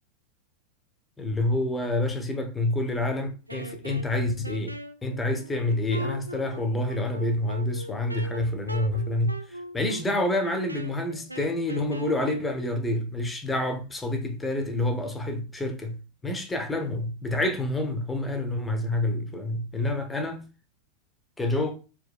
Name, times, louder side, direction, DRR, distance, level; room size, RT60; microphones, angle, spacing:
voice 1, 1.2-20.4 21.4-21.8, left 1 dB, 10° left, 0.9 m, -28 dB
Wind instrument woodwind instrument, 3.5-12.5, right 1 dB, 85° right, 0.4 m, -40 dB
4.4 x 4.4 x 2.3 m
figure-of-eight pair, 90°, 0 cm